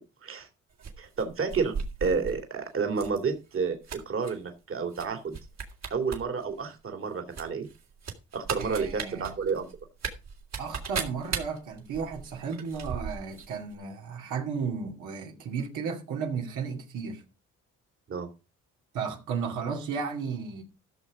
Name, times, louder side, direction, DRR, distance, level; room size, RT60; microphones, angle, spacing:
sound 1, 0.8-2.4 2.9-3.2 3.5-4.3 4.9-5.1 5.3-6.2 6.5-6.6 7.3-13.5 13.7-13.8, right 6 dB, 60° right, 3.0 m, -36 dB
voice 1, 1.0-1.7 2.0-5.4 5.9-7.7 8.3-9.7 18.1-18.3, right 5 dB, 45° right, 2.4 m, -30 dB
voice 2, 8.6-9.3 10.6-17.2 18.9-20.6, right 6 dB, 80° right, 2.4 m, -34 dB
14.0 x 6.5 x 4.8 m
cardioid pair, 90°, 30 cm